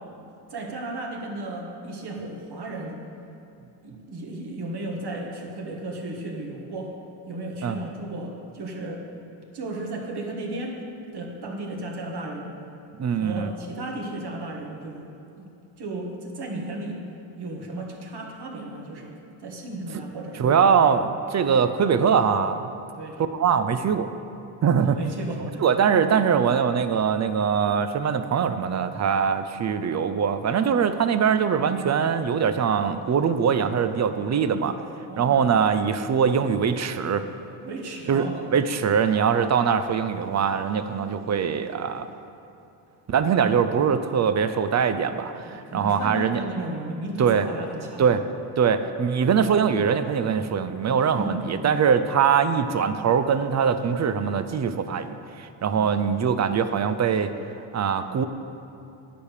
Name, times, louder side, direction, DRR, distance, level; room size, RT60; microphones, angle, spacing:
voice 1, 0.5-3.0 3.8-7.0 7.2-9.0 9.5-10.8 11.1-12.6 13.1-15.1 15.4-15.5 15.8-17.0 17.4-20.6 23.0-23.2 24.8-25.6 35.1-35.4 37.6-38.6 45.4-48.3 51.1-51.8 55.7-56.1, right 1 dB, 50° right, 0 dB, 1.8 m, -34 dB
voice 2, 13.0-13.5 20.4-22.7 23.2-24.1 24.6-25.0 25.4-34.8 35.2-37.2 38.1-38.2 38.5-42.1 43.1-46.4 47.2-47.5 48.0-48.3 48.6-57.3 57.7-58.2, right 7 dB, 35° right, 10 dB, 0.5 m, -22 dB
10.0 x 5.1 x 6.6 m, 2.8 s
supercardioid pair, 85°, 50 cm